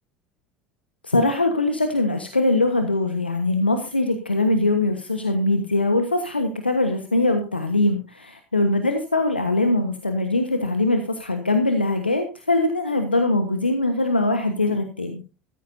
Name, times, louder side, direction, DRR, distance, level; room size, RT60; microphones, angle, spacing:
voice 1, 1.0-15.2, left 2 dB, 90° left, 7 dB, 1.2 m, -22 dB
15.0 x 13.5 x 2.7 m, 0.33 s
figure-of-eight pair, 75°, 6 cm